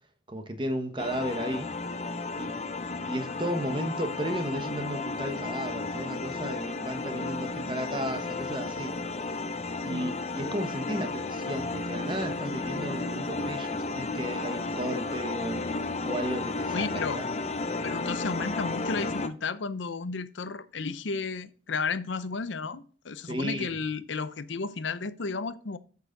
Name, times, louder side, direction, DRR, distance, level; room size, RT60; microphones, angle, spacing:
voice 1, 0.3-1.7 2.4-2.6 3.1-9.4 9.8-15.6 16.0-17.2 23.3-23.8, equal, 25° right, 1.1 m, -34 dB
sound 1, 1.0-19.3, left 3 dB, 35° left, 0.6 m, -33 dB
voice 2, 16.7-17.2 17.7-25.8, left 4 dB, 75° left, 0.6 m, -33 dB
8.1 x 6.7 x 3.8 m
head